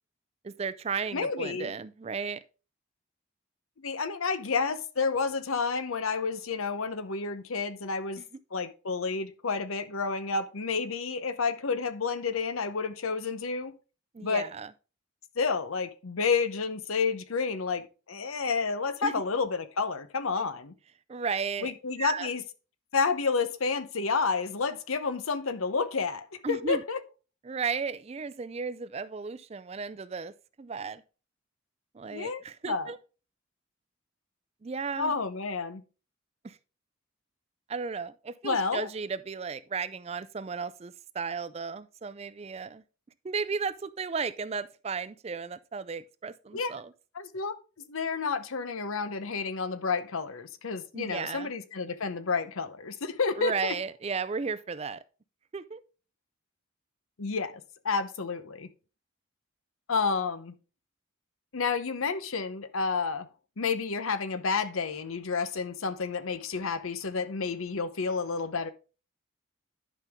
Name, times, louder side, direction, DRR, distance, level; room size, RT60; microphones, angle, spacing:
voice 1, 0.4-2.4 8.2-8.3 14.1-14.7 19.0-19.1 20.4-20.5 21.1-21.7 22.0-22.3 26.4-26.8 27.4-31.0 31.9-33.0 34.6-35.1 36.4-36.6 37.7-42.8 43.2-46.9 50.9-51.5 53.4-55.0 55.5-55.8, right 5 dB, 30° right, 0.3 m, -34 dB
voice 2, 1.1-1.7 3.8-8.2 8.5-13.7 14.2-14.5 15.4-20.7 21.6-22.4 22.9-27.0 32.1-32.9 35.0-35.8 38.4-38.9 46.5-46.7 47.1-47.5 47.9-53.7 57.2-58.7 59.9-60.5 61.5-63.3 63.6-68.7, left 4 dB, 80° left, 0.8 m, -30 dB
11.0 x 5.3 x 3.5 m
head